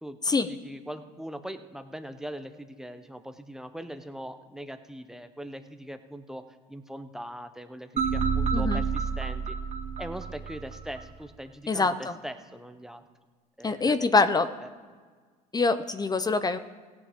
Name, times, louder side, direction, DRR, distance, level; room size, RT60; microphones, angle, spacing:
voice 1, 0.5-6.4 6.7-9.6 10.0-13.1 13.6-14.1 14.6-14.7, equal, 5° right, 8 dB, 0.9 m, -41 dB
sound 1, 8.0-11.0, right 5 dB, 40° right, 2.1 m, -29 dB
voice 2, 11.7-12.1 13.6-14.5 15.5-16.6, left 3 dB, 20° left, 11 dB, 0.7 m, -24 dB
17.0 x 8.6 x 3.7 m, 1.5 s
hypercardioid pair, 75°, 19 cm